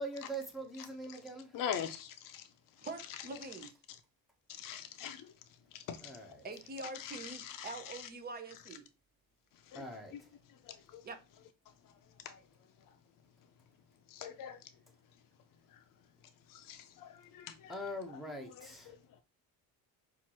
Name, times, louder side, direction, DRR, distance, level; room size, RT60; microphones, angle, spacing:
voice 1, 0.0-1.5 6.0-6.4 9.7-10.1 17.7-18.9, right 1 dB, ahead, 0.9 m, -42 dB
voice 2, 1.5-2.4 4.6-5.2 5.9-6.0 7.4-7.7 9.7-9.8 10.9-11.0 14.2-14.6 16.7-16.8 17.3-17.8 18.6-18.7, left 8 dB, 60° left, 0.6 m, -40 dB
voice 3, 2.8-3.7 6.4-8.8 11.0-11.2, right 3 dB, 25° right, 0.8 m, -44 dB
5.7 x 2.6 x 3.0 m
cardioid pair, 150°, 36 cm